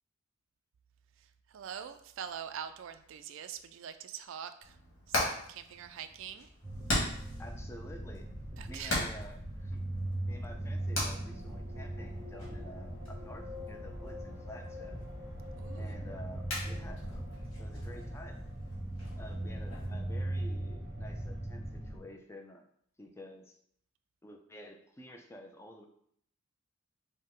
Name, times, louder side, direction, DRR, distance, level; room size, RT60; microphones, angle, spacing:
voice 1, 1.5-4.7 5.1-6.5 8.6-9.0 15.6-16.0, right 8 dB, 65° right, 10 dB, 0.3 m, -44 dB
Hammer, 4.6-19.9, left 1 dB, 65° left, 1.7 m, -40 dB
sound 1, 6.6-22.0, right 1 dB, 15° right, 0.7 m, -39 dB
voice 2, 7.4-8.3 8.6-9.8 10.3-15.0 15.8-17.2 17.6-18.5 19.2-22.6 23.0-23.6 24.2-25.9, equal, 15° left, 3 dB, 0.3 m, -50 dB
5.3 x 2.1 x 3.6 m, 0.68 s
head